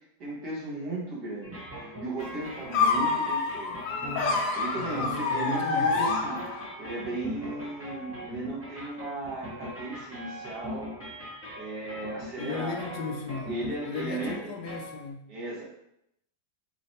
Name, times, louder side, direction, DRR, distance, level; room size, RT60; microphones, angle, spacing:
voice 1, 0.2-3.8 4.3-6.4 6.8-10.9 11.5-12.8 13.4-14.5 15.3-15.7, right 2 dB, 75° right, -6 dB, 2.0 m, -36 dB
sound 1, 1.4-15.1, left 1 dB, 15° right, 0.5 m, -40 dB
sound 2, 2.7-6.9, left 4 dB, 65° left, 0.9 m, -27 dB
voice 2, 4.8-6.1 12.4-15.3, left 5 dB, 85° left, 4 dB, 1.2 m, -37 dB
4.7 x 3.2 x 2.8 m, 0.78 s
omnidirectional pair, 1.8 m